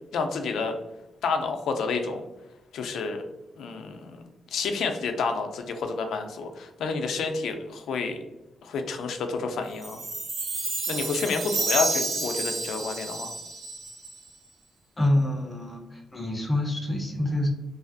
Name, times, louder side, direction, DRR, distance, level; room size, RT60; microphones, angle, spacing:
voice 1, 0.1-0.8 1.2-2.2 2.7-3.2 3.6-4.2 4.5-8.2 8.6-10.0 10.9-13.3, left 4 dB, 85° left, 6 dB, 0.3 m, -29 dB
Chime, 9.8-14.3, right 2 dB, 65° right, 0.6 m, -30 dB
voice 2, 15.0-17.5, left 1 dB, 15° left, 1 dB, 0.4 m, -26 dB
2.6 x 2.4 x 2.5 m, 0.97 s
wide cardioid pair, 165°, 0 cm